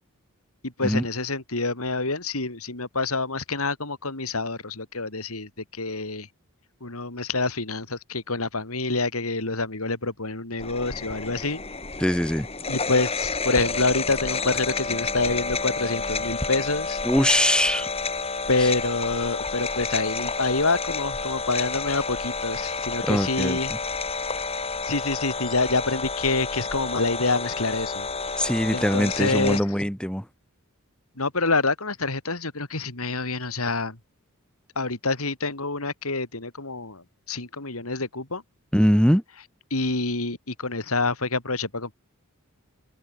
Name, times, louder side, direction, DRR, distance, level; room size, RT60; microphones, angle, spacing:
voice 1, 0.8-5.5 5.8-6.3 6.8-11.6 12.7-17.0 18.5-23.7 24.8-28.1 28.7-29.6 31.2-34.0 34.8-38.4 39.7-41.9, left 3 dB, 75° left, 3.6 m, -27 dB
sound 1, 10.6-29.6, left 4 dB, 25° left, 4.6 m, -30 dB
voice 2, 12.0-12.5 17.0-17.9 18.6-18.7 23.1-23.8 28.4-30.2 38.7-39.2, equal, 5° left, 4.0 m, -22 dB
head